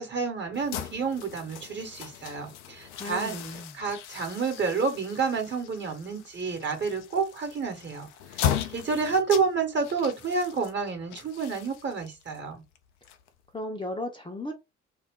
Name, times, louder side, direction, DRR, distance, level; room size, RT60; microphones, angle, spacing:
voice 1, 0.0-3.4 3.8-8.1 8.3-8.4 8.7-12.6, right 5 dB, 30° right, 1.1 m, -29 dB
sound 1, 0.5-13.6, left 10 dB, 75° left, 0.5 m, -37 dB
voice 2, 2.9-3.8 13.5-14.5, left 1 dB, 15° left, 0.7 m, -35 dB
2.4 x 2.1 x 3.6 m
figure-of-eight pair, 45°, 35 cm